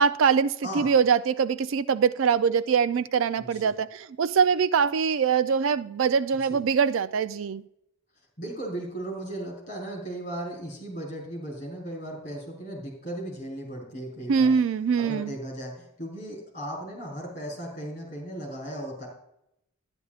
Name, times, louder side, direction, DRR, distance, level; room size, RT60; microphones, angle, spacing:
voice 1, 0.0-7.6 14.3-15.3, right 6 dB, 65° right, 0.3 m, -23 dB
voice 2, 0.6-0.9 3.4-3.7 6.5-6.6 8.4-14.5 15.0-19.1, right 1 dB, 35° left, 4.0 m, -36 dB
12.0 x 10.5 x 2.4 m
head